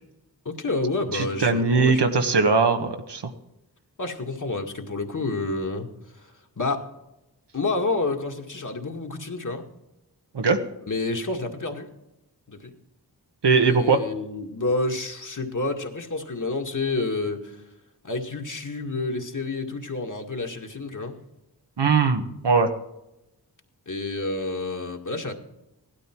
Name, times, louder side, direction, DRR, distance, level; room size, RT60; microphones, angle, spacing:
voice 1, 0.5-2.0 4.0-5.9 6.2-6.3 6.6-6.9 7.5-9.7 10.8-11.9 12.5-12.8 13.7-17.6 18.0-21.2 23.9-25.3, left 3 dB, 50° left, 3 dB, 2.1 m, -29 dB
voice 2, 1.1-3.2 10.3-10.6 13.4-14.0 21.8-22.7, right 4 dB, 80° right, 5 dB, 1.5 m, -20 dB
17.0 x 12.0 x 4.6 m, 0.90 s
wide cardioid pair, 55°, 40 cm